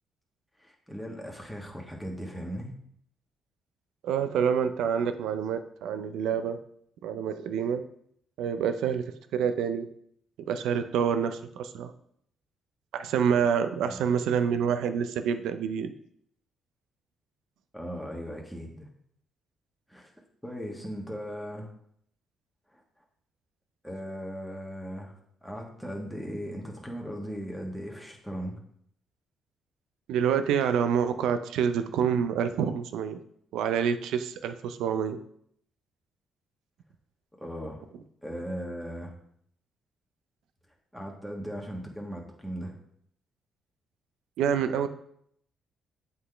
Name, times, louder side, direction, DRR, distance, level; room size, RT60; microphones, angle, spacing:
voice 1, 0.6-2.7 13.8-14.1 17.7-18.9 19.9-20.1 20.4-21.7 22.7-22.8 23.8-25.1 25.4-28.6 37.4-37.8 38.2-39.1 40.9-42.7, equal, ahead, -1 dB, 1.4 m, -38 dB
voice 2, 4.0-6.6 7.0-7.8 8.4-9.1 9.3-9.9 10.5-11.9 12.9-15.9 30.1-33.2 33.5-35.2 44.4-44.9, right 7 dB, 85° right, 10 dB, 0.4 m, -27 dB
7.7 x 4.0 x 3.3 m, 0.69 s
cardioid pair, 90°, 0 cm